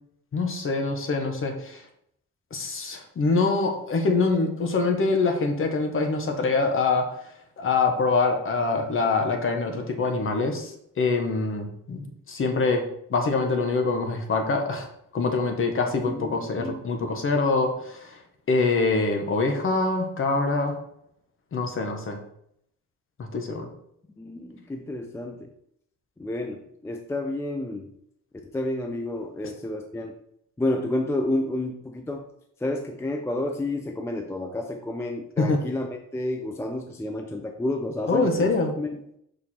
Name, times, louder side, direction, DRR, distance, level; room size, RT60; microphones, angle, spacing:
voice 1, 0.3-1.8 2.5-7.1 7.6-12.8 13.1-14.9 15.1-18.2 18.5-20.8 21.5-22.2 23.2-23.7 35.4-35.6 38.1-38.7, left 3 dB, 40° left, 4 dB, 1.2 m, -24 dB
voice 2, 16.1-16.8 24.2-25.5 26.2-27.9 28.5-30.1 30.6-32.3 32.6-35.9 36.1-38.5 38.8-38.9, left 1 dB, 10° left, 3 dB, 0.4 m, -30 dB
6.4 x 5.2 x 4.3 m, 0.73 s
cardioid pair, 170°, 33 cm